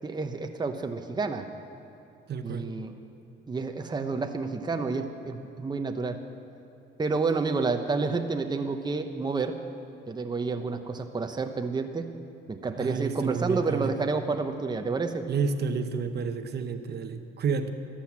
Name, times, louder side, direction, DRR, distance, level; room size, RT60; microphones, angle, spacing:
voice 1, 0.0-1.5 2.4-3.0 3.5-6.2 7.0-9.5 10.1-12.1 12.5-15.3, right 4 dB, 20° right, 5 dB, 0.9 m, -29 dB
voice 2, 2.3-2.7 12.7-14.0 15.3-17.7, right 5 dB, 55° right, 8 dB, 1.0 m, -30 dB
13.5 x 10.0 x 7.4 m, 2.9 s
cardioid pair, 90°, 20 cm